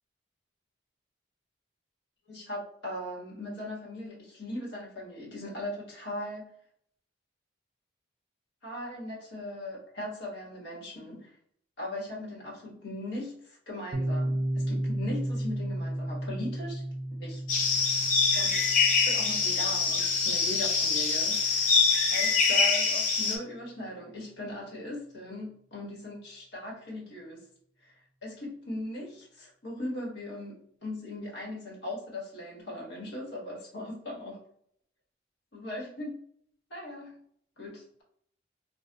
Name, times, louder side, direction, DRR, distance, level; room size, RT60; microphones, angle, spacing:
voice 1, 2.3-6.4 8.6-11.4 11.8-16.8 17.2-17.8 18.3-18.7 19.0-21.8 22.1-27.4 27.8-27.9 28.2-34.4 35.5-36.2 36.7-37.1 37.6-38.0, left 1 dB, 70° left, -4 dB, 1.2 m, -39 dB
Piano, 13.9-21.4, right 1 dB, 45° right, 0.4 m, -34 dB
sound 1, 17.5-23.4, left 4 dB, 40° left, 0.5 m, -25 dB
2.3 x 2.2 x 3.8 m, 0.65 s
head